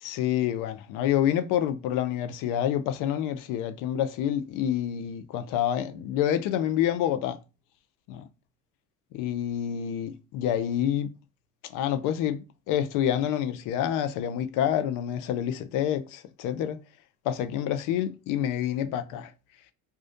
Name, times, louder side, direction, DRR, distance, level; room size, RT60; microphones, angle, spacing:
voice 1, 0.0-7.4 8.1-8.2 9.1-11.1 11.7-16.8 17.2-19.3, left 10 dB, 65° left, 0.5 m, -28 dB
2.4 x 2.1 x 2.4 m
supercardioid pair, 95°, 34 cm